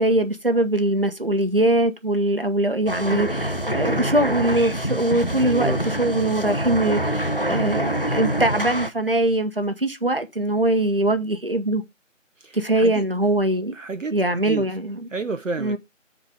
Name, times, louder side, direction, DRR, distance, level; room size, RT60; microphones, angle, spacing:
voice 1, 0.0-5.7 6.0-11.8 12.5-13.7 14.1-15.1 15.6-15.8, right 1 dB, 45° right, 0.9 m, -22 dB
sound 1, 2.9-8.9, right 1 dB, 45° left, 0.5 m, -25 dB
voice 2, 5.3-5.8 12.4-13.0 13.7-14.2 14.4-14.7 15.1-15.8, right 4 dB, 75° right, 0.7 m, -30 dB
7.0 x 4.0 x 4.9 m
figure-of-eight pair, 175°, 39 cm